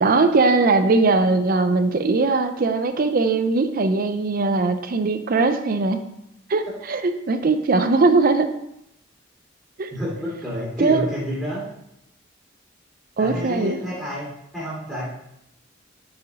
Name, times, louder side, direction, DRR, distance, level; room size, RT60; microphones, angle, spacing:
voice 1, 0.0-6.0 6.5-8.5 9.8-9.9 10.8-11.1 13.2-13.8, right 3 dB, 45° right, 8 dB, 0.5 m, -20 dB
voice 2, 9.9-11.6 13.2-14.3 14.5-15.1, equal, ahead, -10 dB, 2.1 m, -29 dB
5.1 x 4.5 x 4.1 m, 0.79 s
head